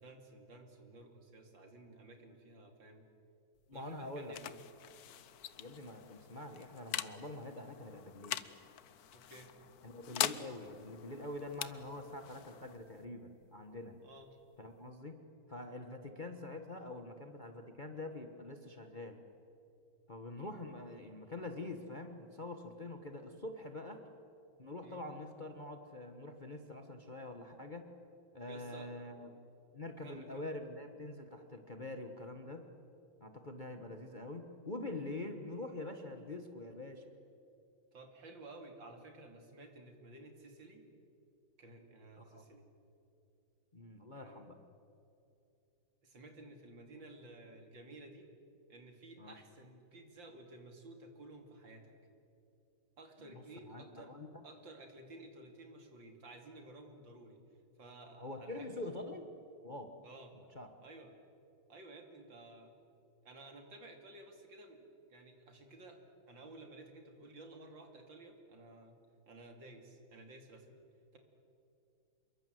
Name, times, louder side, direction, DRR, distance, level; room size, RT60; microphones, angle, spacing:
voice 1, 0.0-3.0 3.7-4.6 9.1-9.5 14.0-14.3 24.8-25.0 28.4-28.9 30.0-30.5 37.9-40.8 41.6-42.7 44.1-44.5 46.0-48.3 48.7-51.9 53.0-54.1 54.4-57.4 57.8-58.7 60.0-60.3 60.8-61.1 61.7-62.7 63.2-66.0 66.3-69.0 69.3-70.8 71.1-71.2, right 2 dB, 65° right, 4 dB, 3.4 m, -54 dB
sound 1, 3.6-14.9, left 11 dB, 60° left, 1.1 m, -44 dB
voice 2, 3.7-4.5 5.6-8.4 9.8-14.0 14.6-15.2 15.5-19.2 20.1-24.0 24.6-27.9 28.3-29.3 29.7-32.7 33.2-37.1 42.2-42.4 43.7-44.6 49.2-49.3 53.7-54.4 58.2-59.3 59.6-59.9 60.5-60.7, left 2 dB, 25° left, 6 dB, 1.2 m, -45 dB
27.5 x 23.0 x 7.9 m, 2.7 s
omnidirectional pair, 2.3 m